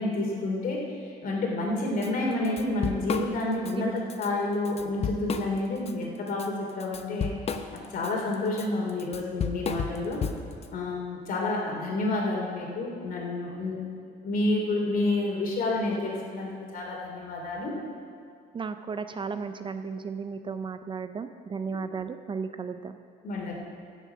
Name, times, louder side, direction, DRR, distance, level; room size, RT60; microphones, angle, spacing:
voice 1, 0.0-7.3 7.7-10.3 10.7-13.8 14.2-17.7 23.2-23.6, left 2 dB, 55° left, 0 dB, 3.0 m, -29 dB
Drum kit / Drum, 2.0-2.1 2.4-3.7 4.1-4.3 4.7-5.9 6.3-10.7, left 6 dB, 35° left, 0.8 m, -33 dB
voice 2, 18.5-23.0, right 5 dB, 30° right, 9 dB, 0.5 m, -34 dB
15.5 x 7.2 x 5.7 m, 2.2 s
cardioid pair, 110°, 17 cm